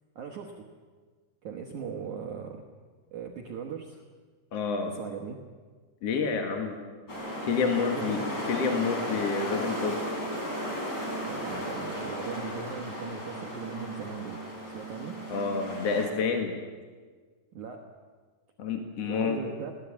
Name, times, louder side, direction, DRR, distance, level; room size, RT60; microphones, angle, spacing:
voice 1, 0.2-0.7 1.4-2.6 3.1-4.0 4.8-5.4 7.0-7.1 7.7-8.3 11.2-15.2 17.5-17.9 19.0-19.7, right 6 dB, 60° right, 2 dB, 2.2 m, -39 dB
voice 2, 4.5-4.9 6.0-6.7 7.4-10.0 15.3-16.5 18.6-19.4, left 5 dB, 50° left, 3 dB, 2.0 m, -29 dB
sound 1, 7.1-16.1, equal, 25° left, 5.2 m, -35 dB
22.0 x 17.5 x 8.8 m, 1.5 s
omnidirectional pair, 4.9 m